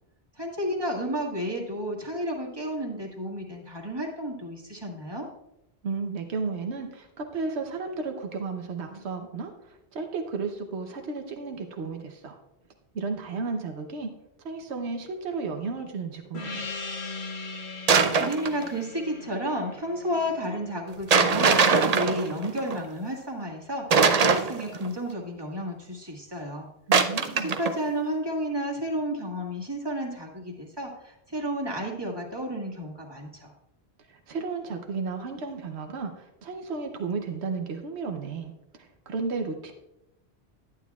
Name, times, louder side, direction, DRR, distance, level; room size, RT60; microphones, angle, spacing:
voice 1, 0.4-5.3 17.7-17.8 18.1-26.7 27.3-33.5, equal, 25° right, -2 dB, 1.6 m, -32 dB
voice 2, 5.8-12.4 12.9-14.1 14.4-16.7 26.9-27.6 34.1-39.7, right 4 dB, 85° right, 4 dB, 1.1 m, -33 dB
Gong, 16.3-21.3, left 3 dB, 75° left, 1.2 m, -39 dB
sound 1, 17.9-18.6 21.1-22.8 23.9-24.9 26.9-27.7, right 5 dB, 45° right, 0.6 m, -21 dB
11.0 x 9.5 x 2.3 m, 0.88 s
omnidirectional pair, 1.1 m